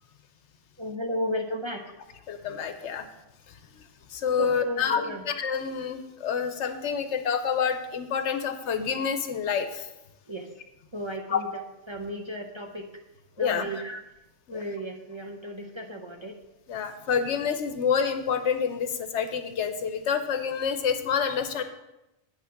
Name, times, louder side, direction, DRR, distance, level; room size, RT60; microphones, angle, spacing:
voice 1, 0.8-2.0 4.4-5.2 10.3-10.5 10.9-11.5 11.9-12.9 13.4-14.0 14.5-16.4 17.3-17.4, equal, 30° right, 2 dB, 0.6 m, -34 dB
voice 2, 2.3-3.1 4.1-9.8 11.3-11.4 13.4-13.7 14.5-14.6 16.7-21.6, left 7 dB, 75° left, 8 dB, 1.1 m, -28 dB
9.0 x 5.9 x 5.9 m, 0.96 s
omnidirectional pair, 1.2 m